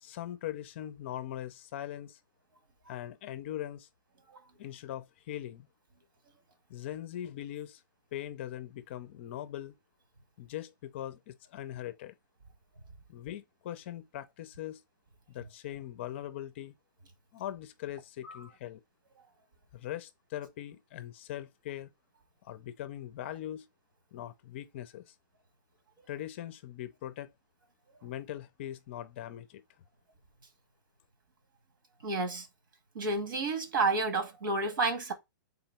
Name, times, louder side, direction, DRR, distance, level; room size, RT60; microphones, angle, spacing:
voice 1, 0.0-2.2 2.9-3.9 4.6-5.7 6.7-7.8 8.1-9.7 10.4-12.2 13.1-14.8 15.3-16.8 17.3-18.8 19.7-21.9 22.4-23.7 24.1-25.1 26.1-27.3 28.0-29.6, left 12 dB, 35° left, 0.5 m, -41 dB
voice 2, 32.0-32.5 32.9-35.1, right 3 dB, 80° right, 1.6 m, -30 dB
3.9 x 2.9 x 4.2 m
hypercardioid pair, 170°, 11 cm